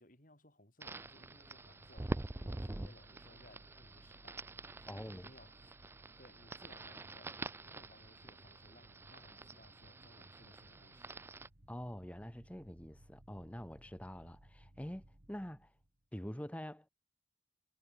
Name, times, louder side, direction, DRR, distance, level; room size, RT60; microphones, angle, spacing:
voice 1, 0.0-4.5 4.8-5.7 6.2-11.1, left 1 dB, 45° left, 7.1 m, -62 dB
sound 1, 0.8-11.5, right 2 dB, 15° right, 0.3 m, -46 dB
sound 2, 0.9-16.1, right 1 dB, 55° right, 2.5 m, -63 dB
voice 2, 4.9-5.3 11.7-15.7 16.1-16.9, equal, 5° left, 1.2 m, -46 dB
head